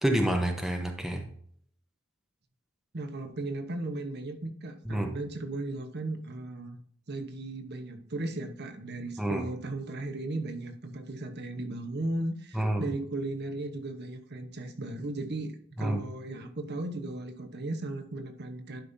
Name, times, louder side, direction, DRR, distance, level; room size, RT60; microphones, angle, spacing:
voice 1, 0.0-1.2 4.8-5.1 9.2-9.4 12.5-12.9 15.8-16.0, right 1 dB, ahead, 2 dB, 1.0 m, -28 dB
voice 2, 2.9-6.8 7.1-15.5 15.8-18.8, right 2 dB, 55° right, 6 dB, 1.1 m, -36 dB
11.5 x 5.5 x 2.7 m, 0.64 s
head